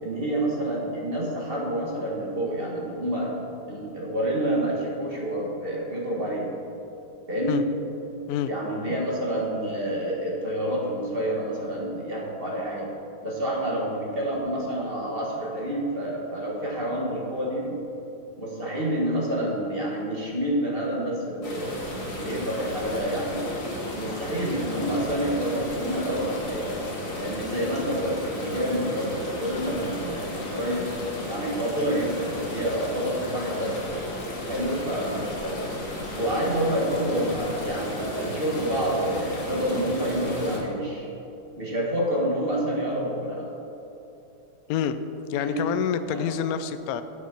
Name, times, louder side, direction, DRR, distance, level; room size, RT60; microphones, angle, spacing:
voice 1, 0.0-3.3 3.7-6.5 7.3-7.7 8.5-12.9 13.2-17.8 18.4-21.8 22.2-23.5 23.9-26.8 27.2-30.9 31.3-34.1 34.5-35.7 36.1-41.0 41.6-43.5 45.4-45.7 46.1-46.2, right 1 dB, 30° right, -3 dB, 1.4 m, -28 dB
sound 1, 21.4-40.6, left 1 dB, 45° left, 2.0 m, -34 dB
voice 2, 45.3-47.0, left 8 dB, 90° left, 10 dB, 0.8 m, -27 dB
8.3 x 7.2 x 5.9 m, 2.8 s
omnidirectional pair, 2.1 m